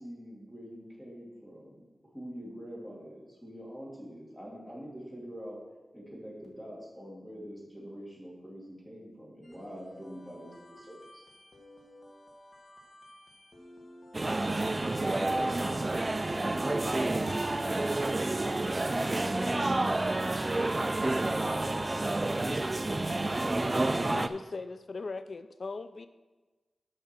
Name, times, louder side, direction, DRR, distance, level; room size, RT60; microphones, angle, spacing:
voice 1, 0.0-5.6 5.9-11.2, equal, 5° left, -5 dB, 2.5 m, -45 dB
sound 1, 9.4-15.3, left 1 dB, 40° left, 1.5 m, -54 dB
sound 2, 14.1-24.3, right 2 dB, 25° right, 0.3 m, -29 dB
voice 2, 14.7-16.5 17.1-21.1 21.7-22.9, right 1 dB, 70° right, 0 dB, 1.7 m, -52 dB
voice 3, 24.0-26.1, left 3 dB, 55° left, 11 dB, 0.3 m, -39 dB
7.3 x 5.6 x 6.0 m, 1.2 s
wide cardioid pair, 125°, 0 cm